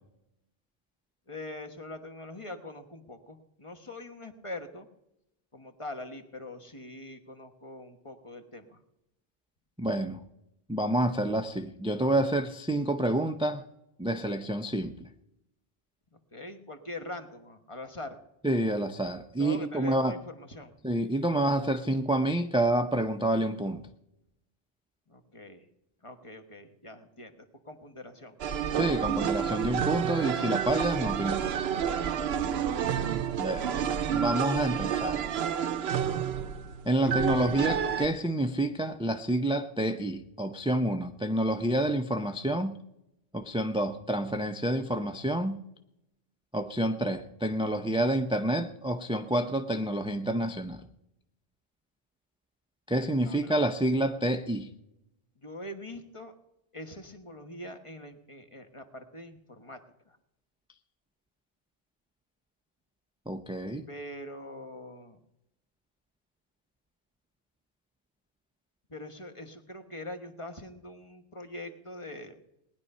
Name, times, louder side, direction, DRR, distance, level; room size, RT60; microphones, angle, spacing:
voice 1, 1.3-4.9 5.5-8.8 16.1-18.2 19.4-20.7 25.1-25.7 26.0-28.4 32.2-33.1 33.8-34.1 37.0-37.3 53.2-53.6 55.4-56.3 56.7-59.8 60.1-60.2 63.9-65.2 68.9-72.4, left 2 dB, 30° left, 6 dB, 1.3 m, -43 dB
voice 2, 9.8-10.2 10.7-13.6 14.0-15.1 18.4-20.1 20.8-23.8 28.7-31.5 33.4-33.8 34.1-35.2 36.8-42.8 43.3-45.6 46.5-50.8 52.9-54.7 63.3-63.9, right 1 dB, 5° right, 8 dB, 0.5 m, -28 dB
sound 1, 28.4-38.1, right 8 dB, 80° right, 0.9 m, -29 dB
19.0 x 10.5 x 5.5 m, 0.83 s
omnidirectional pair, 1.0 m